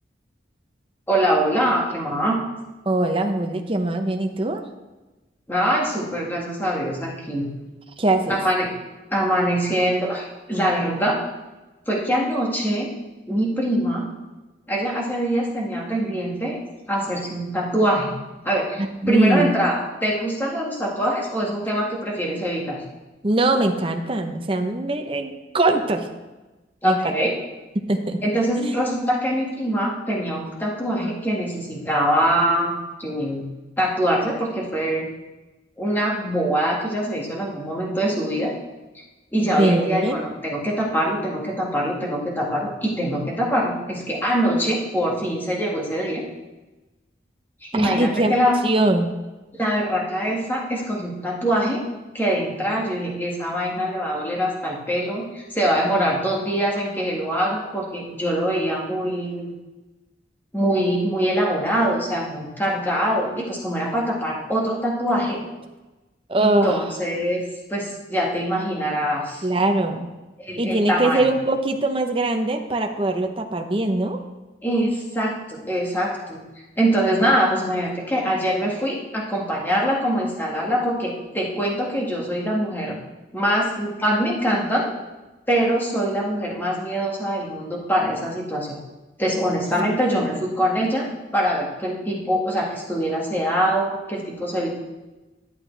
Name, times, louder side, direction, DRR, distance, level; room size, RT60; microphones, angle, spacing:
voice 1, 1.1-2.4 5.5-7.5 8.3-8.7 9.1-11.2 11.9-12.9 13.3-14.1 14.7-16.6 16.9-18.1 18.4-18.8 19.1-22.8 26.8-27.3 28.2-32.7 33.0-33.5 33.8-35.1 35.8-38.5 39.3-46.2 47.6-48.6 49.6-51.8 52.1-59.5 60.5-65.4 66.4-69.5 70.4-71.2 74.6-76.5 76.8-83.0 83.3-84.9 85.5-88.8 89.2-91.1 91.3-94.7, equal, 10° left, -4 dB, 1.8 m, -23 dB
voice 2, 2.9-4.6 8.0-8.4 18.8-19.5 23.2-26.1 26.8-27.0 27.9-28.2 28.6-28.8 39.6-40.2 47.7-48.3 48.6-49.1 66.3-66.7 69.4-70.1 70.6-74.2, right 2 dB, 30° right, 4 dB, 0.8 m, -22 dB
11.5 x 9.1 x 3.4 m, 1.1 s
head